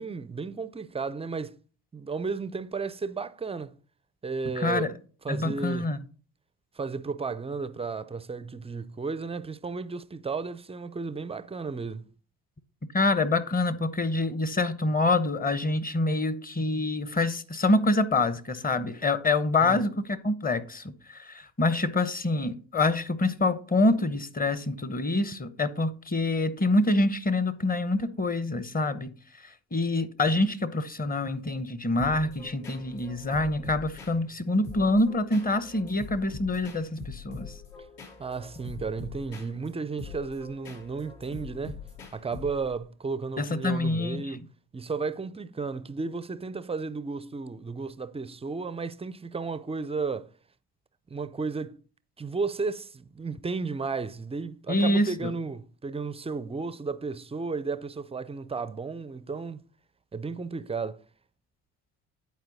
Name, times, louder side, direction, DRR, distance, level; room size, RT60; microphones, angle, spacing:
voice 1, 0.0-1.6 1.9-3.7 4.2-5.0 5.2-5.9 6.8-12.1 19.6-19.8 38.2-41.8 42.1-50.3 51.1-51.8 52.2-59.6 60.1-61.0, right 4 dB, 15° right, 0.4 m, -33 dB
voice 2, 4.5-4.9 5.3-6.0 12.9-29.1 29.4-37.6 43.4-44.4 54.7-55.3, left 2 dB, 20° left, 0.8 m, -26 dB
sound 1, 32.0-42.8, left 4 dB, 70° left, 2.4 m, -44 dB
10.5 x 4.5 x 4.0 m
hypercardioid pair, 65°, 46 cm